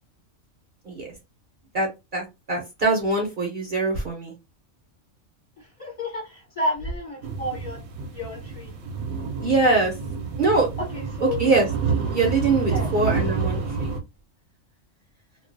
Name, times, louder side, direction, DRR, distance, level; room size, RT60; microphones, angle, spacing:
voice 1, 1.7-4.3 9.4-9.9 10.4-10.7 11.2-11.7 12.1-13.9, right 3 dB, 50° right, 0.7 m, -23 dB
voice 2, 5.6-7.8 8.1-8.7 10.9-11.4 12.6-12.9, left 1 dB, 30° left, 1.0 m, -31 dB
sound 1, 7.2-14.0, right 5 dB, 85° right, 0.9 m, -29 dB
2.3 x 2.2 x 2.5 m
omnidirectional pair, 1.3 m